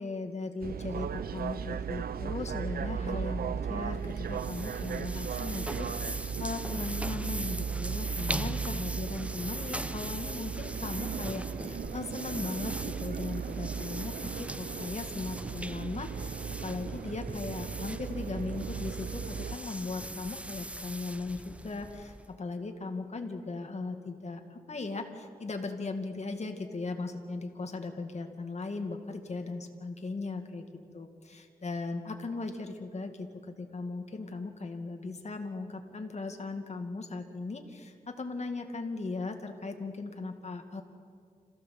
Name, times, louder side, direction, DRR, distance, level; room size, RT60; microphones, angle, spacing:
voice 1, 0.0-16.4 16.6-30.7 30.9-40.8, left 3 dB, 50° left, 5 dB, 2.1 m, -38 dB
sound 1, 0.6-19.6, right 7 dB, 85° right, 0.6 m, -36 dB
sound 2, 3.9-22.4, right 1 dB, 10° right, 0.7 m, -41 dB
26.5 x 15.5 x 7.6 m, 2.3 s
wide cardioid pair, 75°, 15 cm